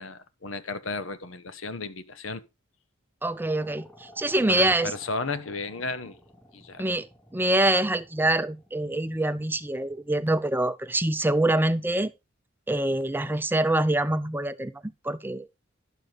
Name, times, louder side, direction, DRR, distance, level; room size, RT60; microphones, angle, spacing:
voice 1, 0.0-2.4 4.5-6.2 6.5-6.8, left 3 dB, 80° left, 1.1 m, -34 dB
voice 2, 3.2-4.9 6.8-7.1 7.3-12.1 12.7-14.7 15.0-15.5, right 1 dB, 10° right, 0.5 m, -25 dB
sound 1, 3.3-10.4, left 1 dB, 10° left, 2.6 m, -52 dB
11.0 x 7.0 x 3.9 m
head